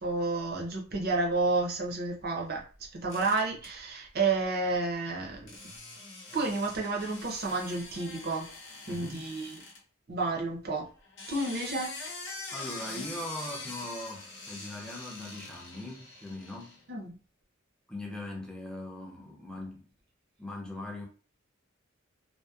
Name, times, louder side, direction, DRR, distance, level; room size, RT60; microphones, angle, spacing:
voice 1, 0.0-2.6 2.9-5.6 6.3-8.5 8.9-9.6 10.1-10.9 11.3-11.9 16.9-17.2, right 3 dB, 50° right, 0.6 m, -30 dB
sound 1, 3.1-3.7 5.5-9.8 11.0-16.8, left 2 dB, 65° left, 0.8 m, -44 dB
voice 2, 8.9-9.3 12.5-16.8 17.9-19.9 20.4-21.1, left 1 dB, 5° left, 0.5 m, -40 dB
2.6 x 2.0 x 2.3 m
head